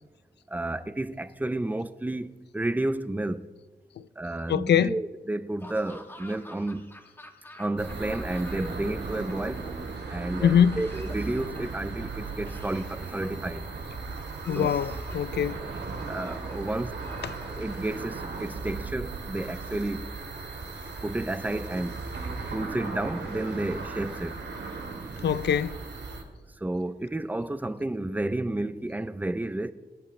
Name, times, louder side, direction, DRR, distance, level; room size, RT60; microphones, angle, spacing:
voice 1, 0.5-3.5 4.2-7.0 7.6-9.7 10.1-13.6 14.5-14.7 16.1-17.0 17.5-20.1 21.0-22.0 22.5-24.4 26.6-29.7, right 1 dB, 10° right, 0.4 m, -31 dB
voice 2, 4.5-5.0 10.4-10.8 14.5-15.6 17.2-17.3 25.2-25.8, left 8 dB, 80° left, 0.4 m, -23 dB
Laughter / Cough, 5.6-8.9 9.2-10.0 10.7-11.8 12.5-13.7 14.4-15.3 16.0-16.6 17.0-18.2, left 1 dB, 10° left, 1.2 m, -48 dB
sound 1, 7.8-26.2, right 4 dB, 80° right, 2.1 m, -37 dB
21.0 x 11.0 x 3.2 m
wide cardioid pair, 175°, 17 cm